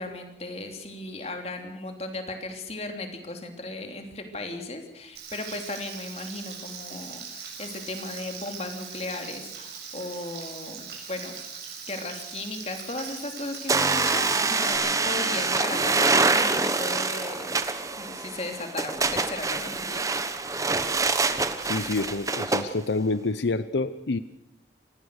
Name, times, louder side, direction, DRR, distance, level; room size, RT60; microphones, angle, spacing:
voice 1, 0.0-11.4 11.9-17.5 17.8-20.3, left 2 dB, 35° left, 5 dB, 3.2 m, -36 dB
Frying (food), 5.1-14.7, right 6 dB, 60° right, 7.0 m, -40 dB
sound 1, 13.7-22.7, right 3 dB, 20° right, 1.1 m, -25 dB
voice 2, 21.6-24.2, left 3 dB, 80° left, 14 dB, 0.7 m, -27 dB
25.5 x 18.5 x 6.6 m, 0.81 s
head